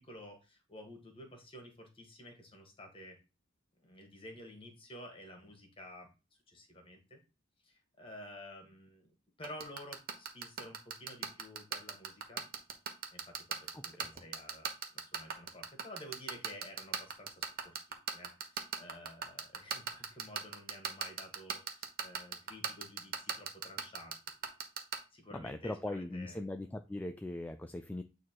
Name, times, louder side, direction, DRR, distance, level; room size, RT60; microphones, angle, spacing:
voice 1, 0.0-3.2 3.8-6.1 6.5-7.2 7.6-12.5 13.1-24.1 24.4-24.5 25.1-26.4, left 1 dB, 30° left, 1.8 m, -52 dB
sound 1, 9.4-25.0, right 7 dB, 50° right, 1.1 m, -36 dB
voice 2, 25.3-28.0, left 1 dB, 10° left, 0.3 m, -40 dB
8.3 x 3.1 x 4.6 m
head